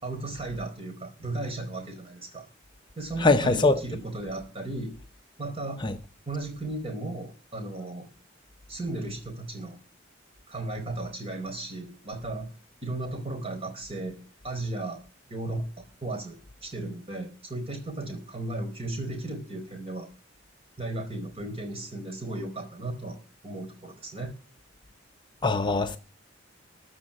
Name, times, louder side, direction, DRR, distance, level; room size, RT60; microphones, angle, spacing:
voice 1, 0.0-2.4 3.0-4.9 5.4-5.8 6.3-8.1 8.7-9.8 10.5-12.5 12.8-15.0 15.3-20.1 20.8-24.3, right 2 dB, 30° right, 4.5 m, -35 dB
voice 2, 3.2-3.8 5.8-5.9 25.4-26.0, left 3 dB, 25° left, 0.7 m, -22 dB
14.0 x 6.2 x 8.6 m
head